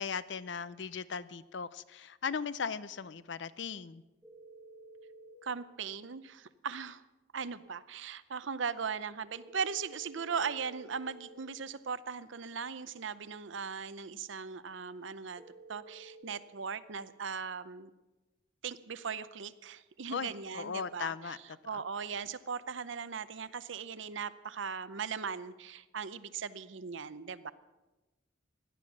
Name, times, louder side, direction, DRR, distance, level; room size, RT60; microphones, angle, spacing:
voice 1, 0.0-4.0 20.1-21.4 21.7-21.8, left 6 dB, 60° left, 16 dB, 0.5 m, -38 dB
sound 1, 4.2-5.4 9.4-11.4 15.4-16.2, right 2 dB, 5° right, 1.3 m, -53 dB
voice 2, 5.4-7.0 7.3-17.9 18.6-27.5, right 6 dB, 70° right, 15 dB, 0.7 m, -39 dB
17.0 x 12.0 x 6.2 m, 1.1 s
head